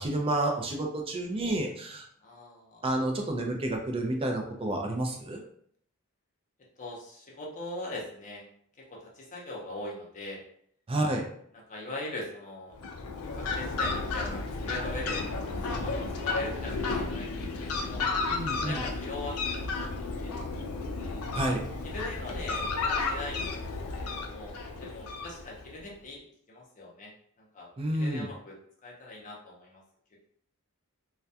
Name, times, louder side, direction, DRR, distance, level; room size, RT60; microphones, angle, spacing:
voice 1, 0.0-2.0 2.8-5.4 10.9-11.2 18.3-18.8 21.3-21.6 27.8-28.3, right 1 dB, 25° right, 1 dB, 0.4 m, -30 dB
voice 2, 2.2-2.8 6.8-8.5 8.8-10.4 11.7-12.8 13.3-15.3 15.7-18.1 18.6-20.4 20.9-21.3 21.8-23.6 23.9-26.2 26.5-27.1 27.4-28.6 28.8-29.8, left 2 dB, 35° left, -3 dB, 0.6 m, -41 dB
Fowl, 12.7-25.8, left 3 dB, 75° left, 0.4 m, -33 dB
2.3 x 2.2 x 2.7 m, 0.65 s
head